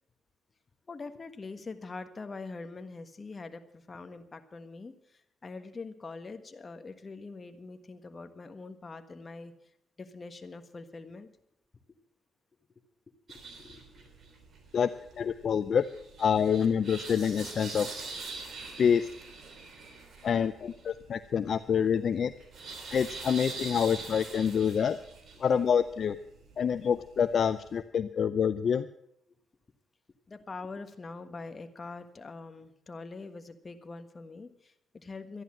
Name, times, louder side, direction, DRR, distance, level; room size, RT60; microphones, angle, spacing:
voice 1, 0.9-9.5 10.0-11.3 13.6-14.0 22.8-22.9 30.3-35.4, left 3 dB, 30° left, 8 dB, 1.4 m, -44 dB
sound 1, 13.3-27.8, right 3 dB, 50° right, 3.5 m, -45 dB
voice 2, 15.2-15.9 16.2-17.9 18.8-19.1 20.2-22.3 22.9-25.0 25.4-26.2 26.6-28.9, left 7 dB, 55° left, 12 dB, 0.5 m, -27 dB
13.0 x 11.0 x 7.5 m, 0.75 s
cardioid pair, 90°, 0 cm